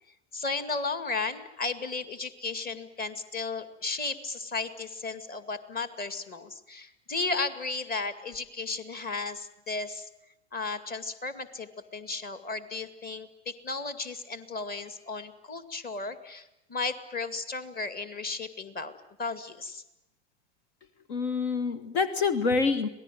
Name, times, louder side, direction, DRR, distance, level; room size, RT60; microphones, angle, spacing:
voice 1, 0.3-10.1 10.5-19.8, left 3 dB, 25° left, 11 dB, 2.2 m, -34 dB
voice 2, 21.1-22.9, left 4 dB, 65° left, 12 dB, 1.7 m, -26 dB
26.0 x 19.0 x 9.3 m, 0.85 s
hypercardioid pair, 85°, 34 cm